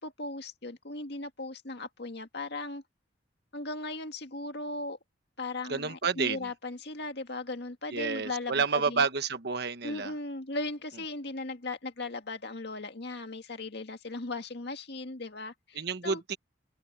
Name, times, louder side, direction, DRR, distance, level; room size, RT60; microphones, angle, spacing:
voice 1, 0.0-2.8 3.5-5.0 5.4-9.0 9.8-16.2, left 2 dB, 65° left, 2.1 m, -37 dB
voice 2, 5.7-6.5 7.9-10.1 15.7-16.4, right 5 dB, 60° right, 1.3 m, -30 dB
head